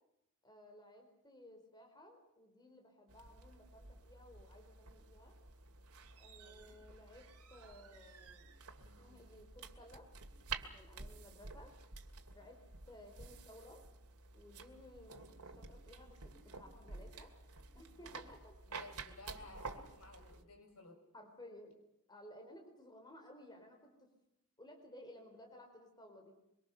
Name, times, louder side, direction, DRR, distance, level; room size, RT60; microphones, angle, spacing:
voice 1, 0.4-5.3 6.2-8.5 9.0-10.1 10.7-11.7 12.3-12.6 12.9-13.8 14.3-17.3 17.7-18.5 21.1-21.8 22.1-24.1 24.6-26.3, left 1 dB, 20° left, 3 dB, 4.7 m, -57 dB
sound 1, 3.1-20.4, right 4 dB, 90° right, 2.4 m, -51 dB
voice 2, 6.4-6.8 18.7-21.0, left 2 dB, 80° left, 4 dB, 6.1 m, -56 dB
24.5 x 24.0 x 6.8 m, 0.80 s
head